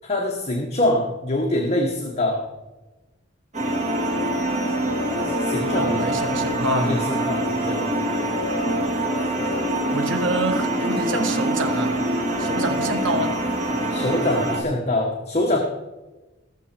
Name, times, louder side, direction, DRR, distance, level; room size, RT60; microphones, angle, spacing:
voice 1, 0.0-2.4 5.1-6.1 6.7-7.8 13.9-15.6, left 1 dB, 35° left, 1 dB, 1.4 m, -24 dB
sound 1, 3.5-14.6, right 1 dB, 40° right, 2.2 m, -24 dB
voice 2, 5.7-7.0 9.9-12.0 12.4-13.4, right 1 dB, 75° right, 6 dB, 1.5 m, -27 dB
18.5 x 7.3 x 4.5 m, 1.1 s
head